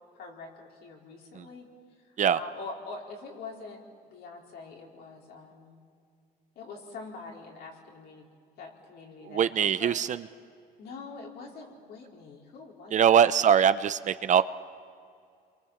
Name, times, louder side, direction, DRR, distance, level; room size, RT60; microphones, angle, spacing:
voice 1, 0.1-1.7 2.3-5.8 6.5-8.2 8.6-10.0 10.8-13.1, left 3 dB, 70° left, -1 dB, 4.6 m, -44 dB
voice 2, 9.3-10.2 12.9-14.4, right 8 dB, 45° right, 14 dB, 0.8 m, -22 dB
28.5 x 23.5 x 7.4 m, 2.3 s
cardioid pair, 110°, 17 cm